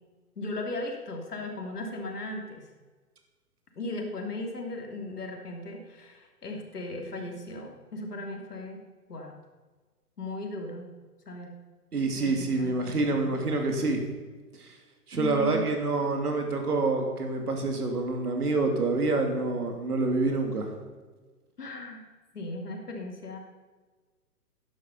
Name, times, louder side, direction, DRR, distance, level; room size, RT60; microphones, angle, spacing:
voice 1, 0.4-2.6 3.8-8.8 9.1-9.4 10.2-10.9 11.3-11.5 12.1-13.3 15.1-15.7 21.6-22.0 22.3-23.4, left 1 dB, 70° left, 2 dB, 3.0 m, -37 dB
voice 2, 11.9-14.0 14.6-14.7 15.1-20.7, right 3 dB, 70° right, 3 dB, 2.9 m, -27 dB
12.5 x 10.5 x 5.5 m, 1.4 s
figure-of-eight pair, 120°, 47 cm